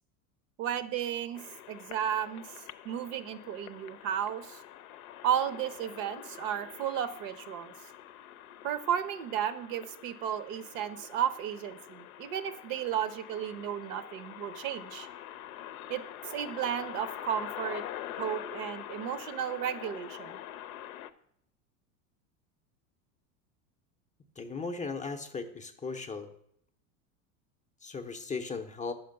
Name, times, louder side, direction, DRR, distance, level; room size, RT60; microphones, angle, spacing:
voice 1, 0.6-1.4 1.7-2.5 2.8-4.6 5.2-7.7 8.6-15.1 15.9-17.8 18.2-20.4, right 9 dB, 65° right, 13 dB, 0.8 m, -33 dB
sound 1, 1.3-21.1, left 12 dB, 80° left, 0.6 m, -45 dB
voice 2, 24.4-26.3 27.8-28.9, left 4 dB, 20° left, 5 dB, 0.5 m, -37 dB
5.9 x 4.9 x 6.5 m, 0.73 s
hypercardioid pair, 95°, 42 cm